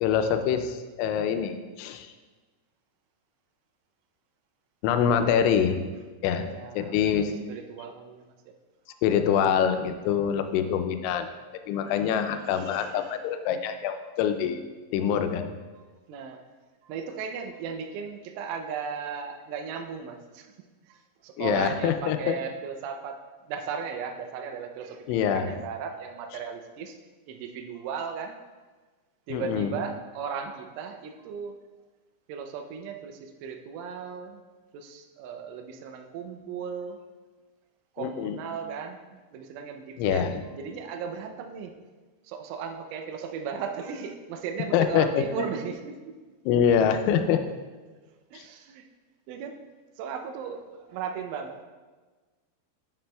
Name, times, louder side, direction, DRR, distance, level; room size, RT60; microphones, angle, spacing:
voice 1, 0.0-2.1 4.8-5.8 6.2-6.5 6.8-7.4 9.0-11.3 11.7-14.6 14.9-15.6 21.4-22.4 25.1-25.5 29.3-29.8 38.0-38.4 40.0-40.4 44.7-45.5 46.5-47.4 48.3-48.4, left 8 dB, 85° left, 7 dB, 2.9 m, -25 dB
voice 2, 6.5-7.1 7.5-8.3 8.9-9.0 10.6-10.8 11.8-13.2 14.0-14.1 15.8-16.4 16.8-20.5 20.8-23.2 23.5-27.0 27.3-28.4 29.3-31.6 32.3-34.4 34.7-37.0 38.0-40.3 40.6-41.7 42.2-46.2 48.3-48.8 49.3-49.6 50.0-51.6, right 6 dB, 85° right, 5 dB, 3.2 m, -36 dB
11.5 x 6.0 x 2.2 m, 1.3 s
omnidirectional pair, 5.5 m